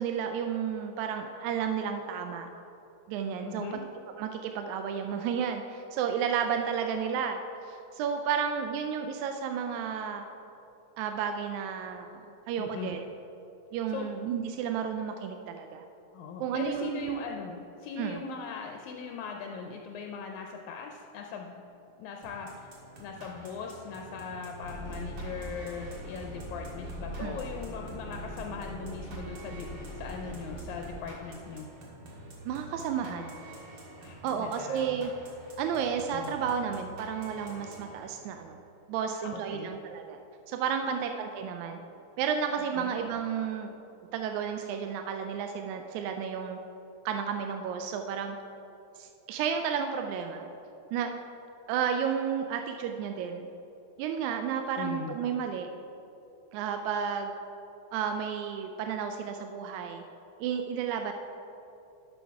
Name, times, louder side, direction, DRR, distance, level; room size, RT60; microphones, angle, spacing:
voice 1, 0.0-2.5 3.1-3.7 4.2-10.3 11.0-13.0 13.7-15.9 16.4-17.2 18.0-18.2 27.2-27.4 32.5-33.4 34.2-35.1 35.6-38.6 38.9-40.2 40.5-41.8 42.2-43.8 44.1-46.6 47.1-48.4 49.0-50.5 50.9-51.1 51.7-53.5 54.0-55.7 56.5-57.3 57.9-60.0 60.4-61.1, right 7 dB, 85° right, 5 dB, 1.9 m, -32 dB
voice 2, 3.4-3.8 12.6-12.9 13.9-14.1 16.1-21.6 22.0-22.7 23.0-31.7 33.0-33.3 34.0-35.0 36.1-36.4 39.1-39.8 40.8-41.2 42.7-42.9 54.8-55.2, left 6 dB, 80° left, 2 dB, 2.0 m, -40 dB
sound 1, 22.2-38.5, right 2 dB, 50° right, 2.3 m, -48 dB
sound 2, 24.6-31.0, equal, 10° left, 0.7 m, -41 dB
11.5 x 6.3 x 4.7 m, 2.9 s
omnidirectional pair, 3.4 m